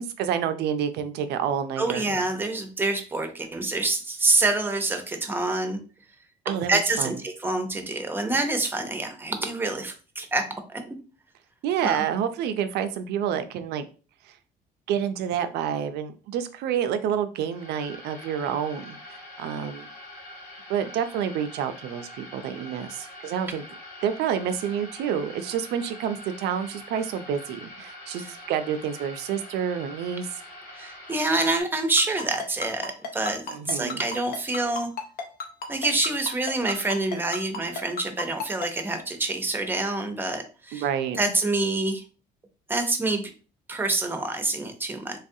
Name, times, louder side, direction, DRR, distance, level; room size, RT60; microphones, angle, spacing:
voice 1, 0.0-2.1 6.5-7.2 11.6-13.9 14.2-14.3 14.9-19.9 20.7-23.6 24.0-30.3 33.5-34.0 40.7-41.2, right 8 dB, 75° right, 10 dB, 0.4 m, -28 dB
voice 2, 1.8-5.8 6.7-10.8 11.8-12.0 28.1-28.3 30.8-34.9 35.7-40.8 41.2-42.0 42.7-43.3 43.7-45.2, right 2 dB, 10° right, 6 dB, 0.6 m, -26 dB
sound 1, 17.4-31.6, left 1 dB, 85° left, 1.7 m, -44 dB
Ringtone, 32.0-38.7, left 4 dB, 65° left, 0.7 m, -32 dB
3.3 x 2.4 x 2.6 m, 0.36 s
cardioid pair, 110°, 17 cm